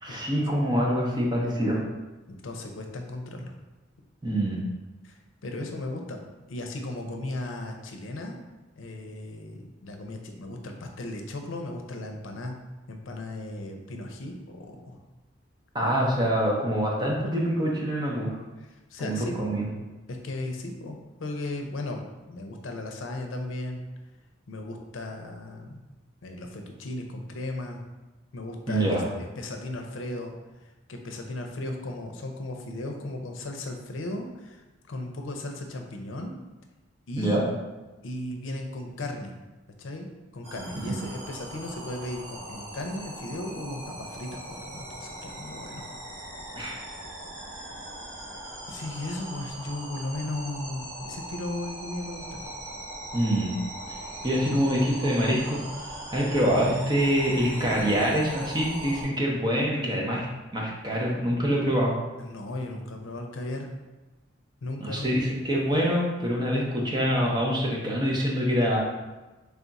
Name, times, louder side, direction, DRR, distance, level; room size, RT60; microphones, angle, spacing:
voice 1, 0.0-1.8 4.2-4.6 15.7-18.4 19.0-19.7 28.7-29.1 37.2-37.5 40.9-41.0 46.6-46.8 53.1-53.5 53.9-54.0 54.2-55.6 56.1-60.3 60.5-61.9 64.8-68.8, equal, 25° right, -3 dB, 0.7 m, -25 dB
voice 2, 2.3-3.5 5.0-6.2 6.5-8.4 8.8-12.5 12.9-15.0 18.9-19.5 20.1-22.0 22.3-23.8 24.5-25.8 26.2-27.8 28.3-29.0 29.4-30.3 30.9-36.4 37.1-37.4 38.0-39.3 39.8-45.9 47.5-47.6 48.7-52.5 62.2-63.7 64.6-65.2, left 2 dB, 90° left, 3 dB, 0.5 m, -36 dB
sound 1, 40.4-59.0, right 1 dB, 70° right, 1.2 m, -40 dB
3.4 x 2.4 x 4.0 m, 1.1 s
head